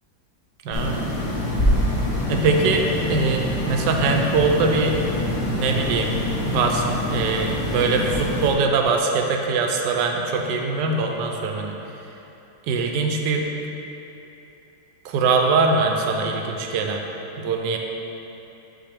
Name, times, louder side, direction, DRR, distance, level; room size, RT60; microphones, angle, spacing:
voice 1, 0.6-1.0 2.3-5.0 5.5-6.8 7.1-11.8 12.7-13.4 15.0-17.0 17.4-17.8, right 4 dB, 75° right, 2 dB, 1.2 m, -22 dB
sound 1, 0.7-8.5, left 1 dB, 45° left, 0.5 m, -25 dB
5.9 x 5.7 x 3.5 m, 3.0 s
omnidirectional pair, 2.0 m